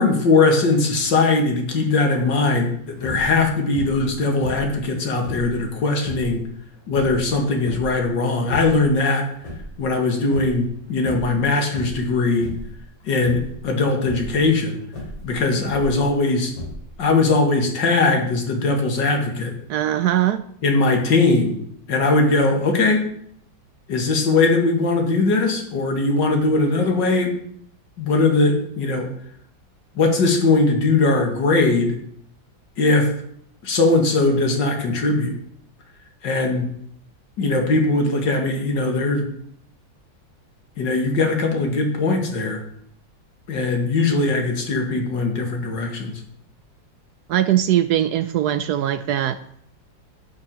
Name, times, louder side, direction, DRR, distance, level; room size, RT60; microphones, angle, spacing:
voice 1, 0.0-6.5 6.9-9.3 9.8-12.5 13.0-14.8 15.2-16.5 17.0-19.5 20.6-21.6 21.9-23.0 23.9-27.3 28.0-29.1 30.0-31.9 32.8-33.1 33.6-35.3 36.2-36.7 37.4-39.2 40.8-42.6 43.5-46.2, left 3 dB, 65° left, 3 dB, 2.5 m, -20 dB
sound 1, 3.0-3.4 3.7-4.1 4.4-5.5 6.0-6.3 6.9-8.0 8.3-8.9 9.2-10.0 10.3-10.7 11.0-11.4 11.7-12.1 12.4-12.8 13.2-13.6 14.0-14.3 14.9-16.0 16.5-17.1, left 1 dB, 90° left, 3.9 m, -35 dB
voice 2, 19.7-20.4 47.3-49.4, right 12 dB, 75° right, 12 dB, 0.9 m, -20 dB
10.5 x 5.9 x 7.4 m, 0.67 s
omnidirectional pair, 2.1 m